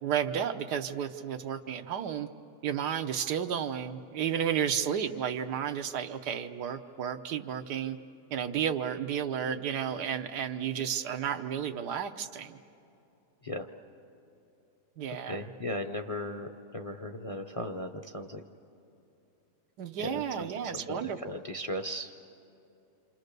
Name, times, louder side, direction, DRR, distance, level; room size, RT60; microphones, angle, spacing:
voice 1, 0.0-2.3 2.6-8.0 8.3-12.6 15.0-15.5 19.8-21.2, right 8 dB, 90° right, 7 dB, 1.5 m, -32 dB
voice 2, 15.2-18.4 20.0-22.1, left 1 dB, 35° left, 5 dB, 0.6 m, -37 dB
28.0 x 27.5 x 6.7 m, 2.8 s
omnidirectional pair, 1.7 m